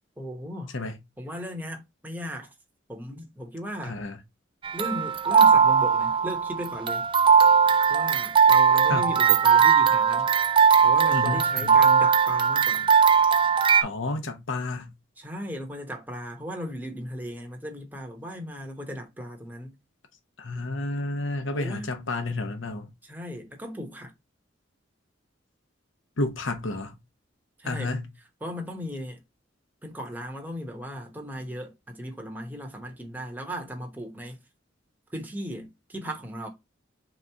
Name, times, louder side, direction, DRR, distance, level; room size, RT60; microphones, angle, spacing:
voice 1, 0.2-0.8 1.2-2.5 2.9-4.0 4.7-7.1 7.9-10.3 10.8-12.9 15.2-19.8 21.5-21.9 23.0-24.1 27.6-28.0 28.4-29.2 29.8-34.4 35.1-36.5, equal, 10° right, 0.9 m, -37 dB
voice 2, 3.8-4.2 8.9-9.1 11.1-11.9 13.8-14.9 20.4-22.9 26.2-27.0 27.6-28.1, left 2 dB, 75° left, 0.8 m, -31 dB
sound 1, 4.6-13.8, right 6 dB, 25° right, 0.3 m, -19 dB
3.8 x 3.1 x 3.4 m
head